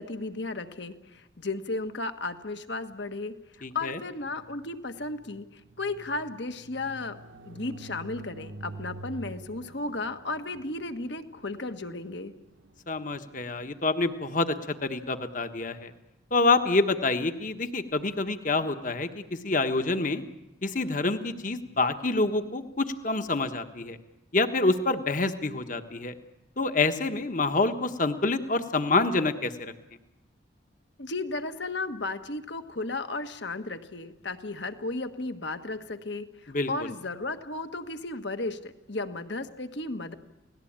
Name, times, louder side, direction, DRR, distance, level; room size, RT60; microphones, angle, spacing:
voice 1, 0.0-3.3 3.7-7.2 7.5-12.3 31.0-40.1, left 2 dB, 60° left, 8 dB, 1.5 m, -34 dB
voice 2, 3.6-4.0 12.9-15.9 16.3-20.2 20.6-24.0 24.3-26.1 26.6-29.7 36.5-36.9, left 3 dB, 40° left, 8 dB, 1.3 m, -27 dB
sound 1, 4.2-14.2, right 2 dB, 75° right, 1.3 m, -47 dB
29.0 x 18.5 x 8.8 m, 0.97 s
head